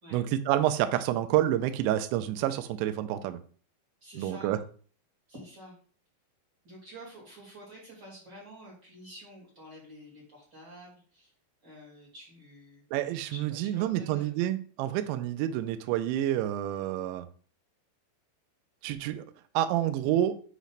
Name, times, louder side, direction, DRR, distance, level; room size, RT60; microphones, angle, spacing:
voice 1, 0.1-3.4 4.2-4.6 12.9-17.3 18.8-19.3 19.5-20.4, right 12 dB, 85° right, 9 dB, 2.6 m, -28 dB
voice 2, 4.0-4.5 5.3-5.8 6.6-11.3 11.6-12.8 13.3-14.3, equal, 35° right, -6 dB, 2.0 m, -49 dB
7.9 x 3.1 x 4.1 m, 0.43 s
omnidirectional pair, 5.6 m